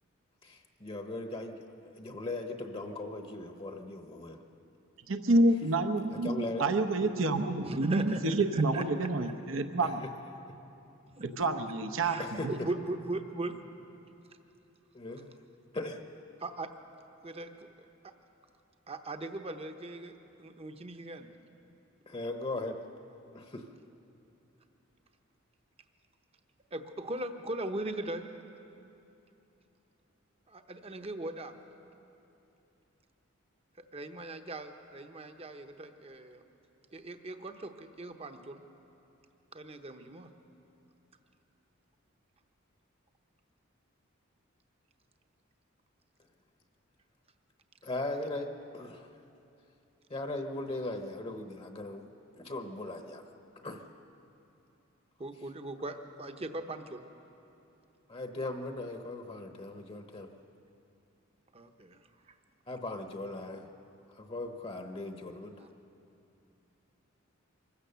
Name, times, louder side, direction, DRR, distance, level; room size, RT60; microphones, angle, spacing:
voice 1, 0.4-1.5 1.8-4.4 6.1-6.6 9.8-9.9 12.2-12.7 14.9-15.3 15.7-16.0 22.1-22.8 23.3-23.7 47.8-49.1 50.1-52.1 52.4-53.2 53.6-53.8 58.1-60.3 62.7-63.7 64.1-65.5, left 2 dB, 30° left, 5 dB, 1.0 m, -38 dB
voice 2, 5.1-10.0 11.2-12.5, right 2 dB, 70° right, 7 dB, 0.9 m, -28 dB
voice 3, 7.6-8.3 8.5-9.1 11.1-11.2 12.0-13.6 16.4-16.7 17.2-17.9 18.9-21.3 26.7-28.3 30.5-31.5 33.9-36.4 36.9-38.6 39.5-40.3 55.2-57.0 61.5-62.0 62.3-62.4 65.6-65.7, right 2 dB, 30° right, 7 dB, 0.9 m, -39 dB
24.5 x 15.5 x 6.8 m, 2.8 s
head